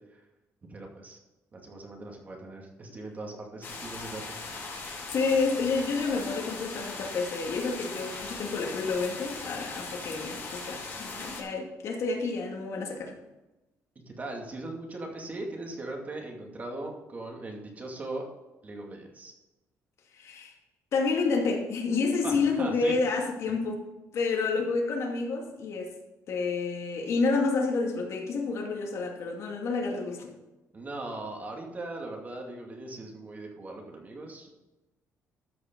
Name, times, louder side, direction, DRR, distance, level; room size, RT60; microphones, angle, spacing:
voice 1, 0.7-1.2 1.5-4.4 14.1-18.2 18.6-19.3 22.2-23.2 30.7-34.5, right 2 dB, 30° right, 1 dB, 2.4 m, -39 dB
sound 1, 3.6-11.4, left 3 dB, 40° left, 3.8 m, -39 dB
voice 2, 5.1-13.1 20.1-20.5 20.9-23.8 24.1-25.9 26.3-30.3, left 4 dB, 60° left, 1 dB, 2.4 m, -29 dB
13.5 x 6.1 x 5.4 m, 1.0 s
cardioid pair, 130°, 6 cm